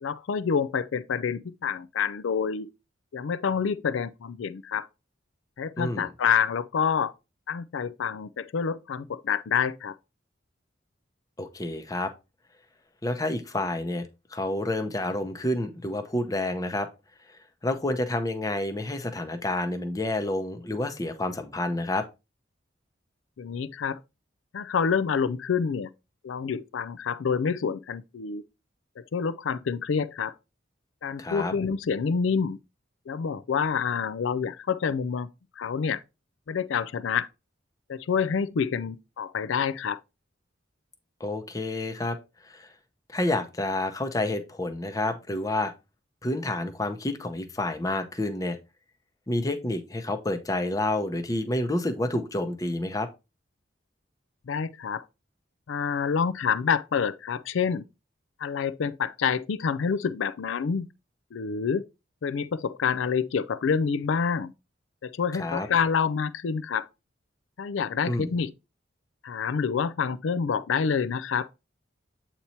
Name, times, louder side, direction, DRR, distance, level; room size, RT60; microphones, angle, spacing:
voice 1, 0.0-2.7 3.1-4.9 5.6-7.1 7.5-9.9 23.4-24.0 24.5-25.9 26.2-28.4 29.0-30.3 31.0-32.6 33.1-35.3 35.6-36.0 36.5-37.3 37.9-40.0 54.5-55.0 55.7-57.8 58.4-60.9 61.3-61.8 62.2-64.5 65.0-66.9 67.6-68.5 69.2-71.5, left 6 dB, 85° left, 0.4 m, -27 dB
voice 2, 5.8-6.1 11.4-12.1 13.0-16.9 17.6-22.1 31.2-31.5 41.2-42.2 42.4-42.7 43.1-45.7 46.2-48.6 49.3-53.1 65.3-65.7 68.1-68.3, left 1 dB, 20° left, 0.7 m, -29 dB
8.1 x 2.9 x 4.2 m
head